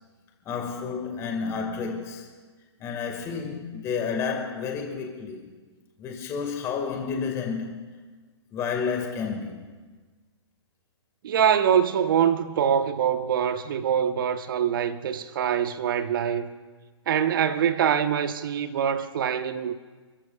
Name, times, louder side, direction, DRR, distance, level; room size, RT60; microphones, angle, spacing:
voice 1, 0.5-2.3 2.8-5.5 6.0-7.9 8.5-9.7, left 5 dB, 20° left, 1.9 m, -30 dB
voice 2, 11.2-16.5 17.1-19.7, right 8 dB, 45° right, 1.2 m, -24 dB
29.5 x 14.5 x 2.4 m
figure-of-eight pair, 130°, 15 cm